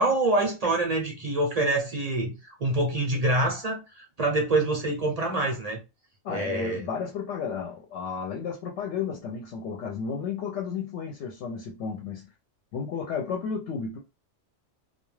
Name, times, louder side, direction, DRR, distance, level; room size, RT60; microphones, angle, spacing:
voice 1, 0.0-5.8 6.3-6.8, right 2 dB, 45° right, 0.5 m, -26 dB
voice 2, 6.2-12.3 12.7-14.0, left 6 dB, 75° left, 0.9 m, -33 dB
2.3 x 2.2 x 3.1 m
omnidirectional pair, 1.2 m